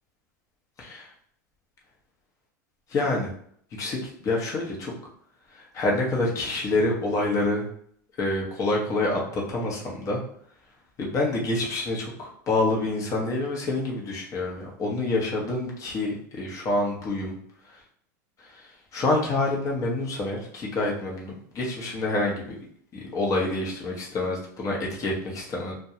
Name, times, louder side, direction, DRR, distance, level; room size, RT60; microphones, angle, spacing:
voice 1, 2.9-3.3 3.8-4.0 4.2-4.9 5.7-7.6 8.2-10.2 11.0-17.3 18.9-22.6 22.9-25.7, left 2 dB, 35° left, -2 dB, 0.8 m, -27 dB
2.2 x 2.1 x 2.8 m, 0.62 s
hypercardioid pair, 105°, 10 cm